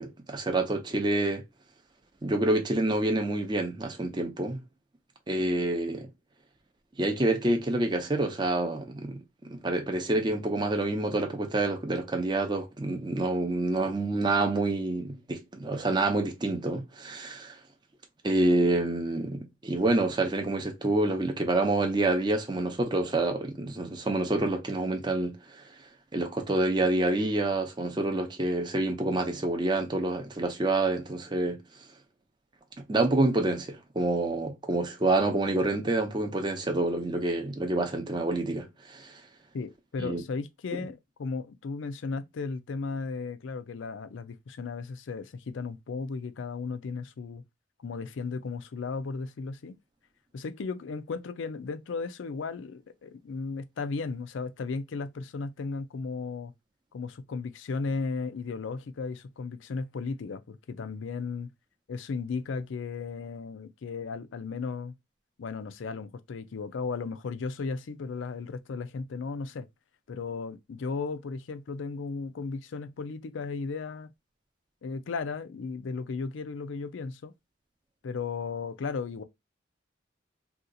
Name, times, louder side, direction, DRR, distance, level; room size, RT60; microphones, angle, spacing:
voice 1, 0.0-1.4 2.2-4.6 5.3-6.1 7.0-9.2 9.5-17.6 18.2-25.6 26.1-31.6 32.8-39.2 40.0-40.2 40.7-40.8, right 2 dB, 25° right, 0.6 m, -27 dB
voice 2, 39.5-47.4 47.8-49.8 50.3-56.5 56.9-61.5 61.9-64.9 65.4-69.7 70.1-74.1 74.8-77.3 78.0-79.2, left 4 dB, 75° left, 0.4 m, -35 dB
2.8 x 2.3 x 3.7 m
head